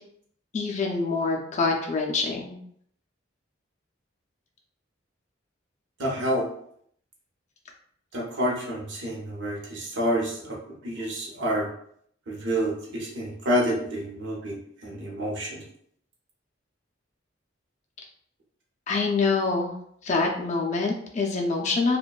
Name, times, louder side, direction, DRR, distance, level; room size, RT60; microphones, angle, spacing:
voice 1, 0.5-2.6 18.9-19.7 20.0-22.0, left 4 dB, 35° left, 0 dB, 0.4 m, -25 dB
voice 2, 6.0-6.5 8.1-10.6 10.8-11.7 12.3-15.6, equal, 65° right, -2 dB, 0.8 m, -28 dB
2.5 x 2.2 x 2.2 m, 0.66 s
head